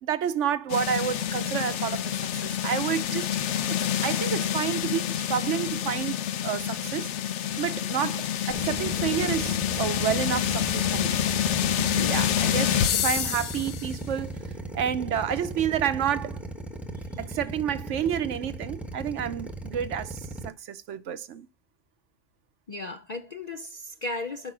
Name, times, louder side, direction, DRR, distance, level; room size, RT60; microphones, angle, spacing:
voice 1, 0.0-2.1 2.4-3.3 3.7-6.2 6.4-7.1 7.6-11.2 12.0-14.3 14.7-16.4 17.2-21.5, right 9 dB, 70° right, 1.0 m, -29 dB
sound 1, 0.7-13.9, left 10 dB, 65° left, 0.9 m, -28 dB
Drill, 8.5-20.5, right 2 dB, ahead, 0.9 m, -37 dB
voice 2, 11.7-12.1 16.8-17.2 22.7-24.5, left 2 dB, 50° left, 0.5 m, -36 dB
6.9 x 5.3 x 6.0 m
omnidirectional pair, 1.4 m